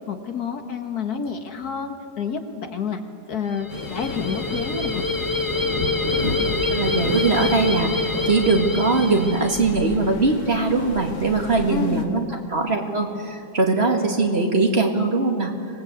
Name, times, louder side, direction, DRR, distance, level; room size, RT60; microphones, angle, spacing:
voice 1, 0.1-3.0 3.3-5.0 11.7-12.4, left 6 dB, 65° left, 6 dB, 1.9 m, -29 dB
sound 1, 3.5-9.9, left 2 dB, 15° left, 1.1 m, -26 dB
Waves surf, 3.7-12.0, left 3 dB, 85° left, 2.4 m, -32 dB
voice 2, 6.7-15.5, right 3 dB, 35° right, 3 dB, 2.2 m, -21 dB
25.0 x 19.0 x 8.4 m, 2.4 s
omnidirectional pair, 1.8 m